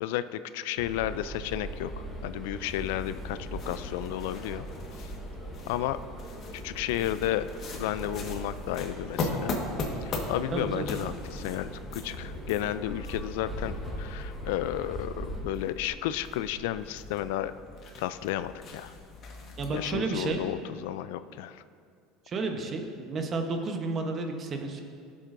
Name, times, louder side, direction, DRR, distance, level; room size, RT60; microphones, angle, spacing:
voice 1, 0.0-4.6 5.7-6.0 6.6-7.5 7.7-9.5 10.0-17.5 18.0-18.9 19.7-21.6, left 13 dB, 85° left, 14 dB, 0.3 m, -32 dB
sound 1, 0.8-15.4, equal, 10° left, 2.2 m, -40 dB
sound 2, 2.6-20.3, left 3 dB, 40° left, 1.4 m, -40 dB
voice 2, 10.5-10.9 19.6-20.4 22.3-24.8, right 3 dB, 30° right, 4 dB, 1.0 m, -31 dB
15.5 x 7.6 x 2.6 m, 2.3 s
cardioid pair, 140°, 0 cm